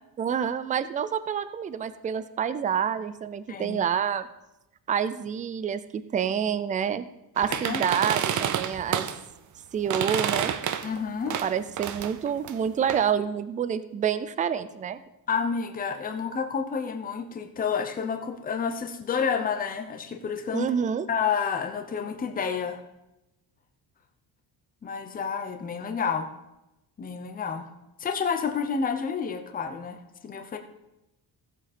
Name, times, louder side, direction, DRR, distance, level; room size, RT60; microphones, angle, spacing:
voice 1, 0.2-4.3 4.9-7.0 7.4-9.1 9.7-10.5 11.4-15.0 20.5-21.1, right 8 dB, 20° right, 13 dB, 0.4 m, -28 dB
voice 2, 3.5-3.8 7.5-7.8 10.8-11.4 15.3-20.7 21.1-22.8 24.8-26.3 27.0-27.7 28.0-30.6, left 6 dB, 20° left, 5 dB, 0.8 m, -29 dB
sound 1, 7.4-9.2 9.9-11.0 11.3-13.1, right 9 dB, 45° right, 0.7 m, -29 dB
16.0 x 7.5 x 4.3 m, 0.92 s
cardioid pair, 175°, 40 cm